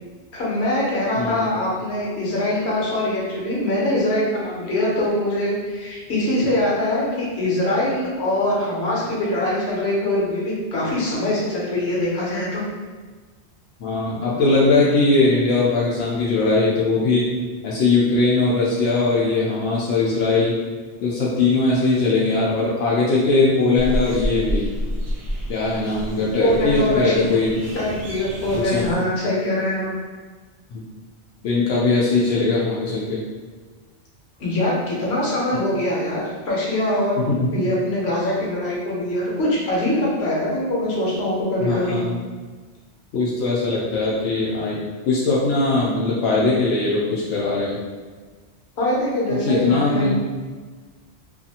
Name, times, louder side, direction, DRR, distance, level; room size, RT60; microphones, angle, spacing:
voice 1, 0.3-12.6 26.4-27.3 27.7-29.9 34.4-37.3 37.5-42.0 48.8-50.2, left 1 dB, 65° left, -5 dB, 1.1 m, -23 dB
voice 2, 13.8-17.2 17.6-20.6 21.0-24.7 25.5-27.6 28.6-28.9 30.7-30.8 31.4-33.2 37.3-37.5 41.6-42.2 43.1-44.8 45.1-47.8 49.4-50.2, left 3 dB, 85° left, -6 dB, 0.9 m, -20 dB
sound 1, 23.8-29.0, equal, 80° right, 0.9 m, -29 dB
2.6 x 2.5 x 2.7 m, 1.4 s
omnidirectional pair, 1.2 m